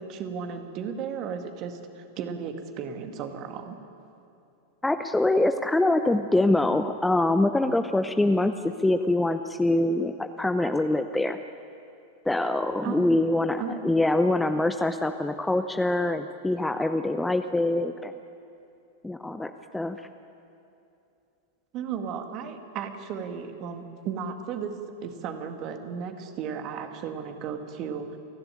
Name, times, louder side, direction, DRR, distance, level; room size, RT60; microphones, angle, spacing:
voice 1, 0.0-3.8 12.8-13.2 13.6-13.8 21.7-24.7 25.0-28.2, right 7 dB, 40° right, 6 dB, 2.0 m, -35 dB
voice 2, 4.8-11.4 12.3-18.1 19.0-20.0, left 2 dB, 5° left, 8 dB, 0.7 m, -24 dB
29.0 x 11.5 x 9.1 m, 2.7 s
figure-of-eight pair, 90°, 0 cm